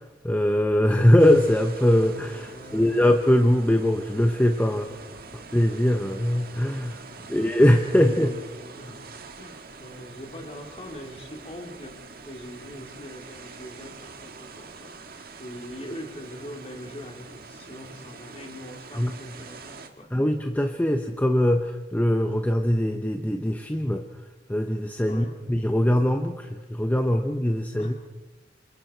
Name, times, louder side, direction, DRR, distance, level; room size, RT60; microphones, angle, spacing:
voice 1, 0.2-4.9 5.5-7.0 7.3-8.3 19.0-19.2 20.1-24.0 24.5-27.9, left 1 dB, 10° left, 5 dB, 0.9 m, -22 dB
sound 1, 1.2-19.9, right 4 dB, 55° right, 1.7 m, -45 dB
voice 2, 2.5-3.0 4.6-5.4 7.0-7.5 8.0-20.1 25.1-25.4 27.7-28.0, equal, 35° left, 2 dB, 3.2 m, -42 dB
29.0 x 26.5 x 4.5 m, 1.2 s
head